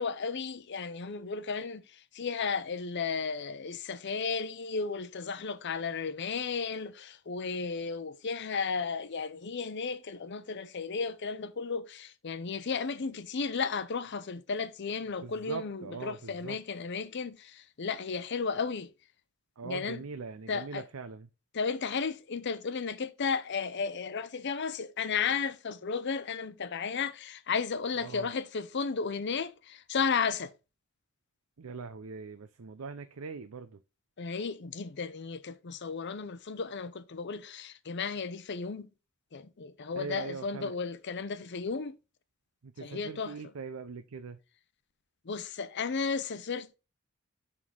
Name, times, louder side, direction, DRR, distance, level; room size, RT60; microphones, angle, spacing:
voice 1, 0.0-18.9 19.6-20.0 20.5-20.8 21.5-30.5 34.2-38.9 39.3-42.0 42.8-43.3 45.2-46.8, left 5 dB, 55° left, 0.6 m, -34 dB
voice 2, 15.2-16.6 19.6-21.3 28.0-28.3 31.6-33.8 39.9-40.7 42.6-44.4, right 4 dB, 80° right, 0.6 m, -41 dB
11.0 x 3.8 x 3.8 m
head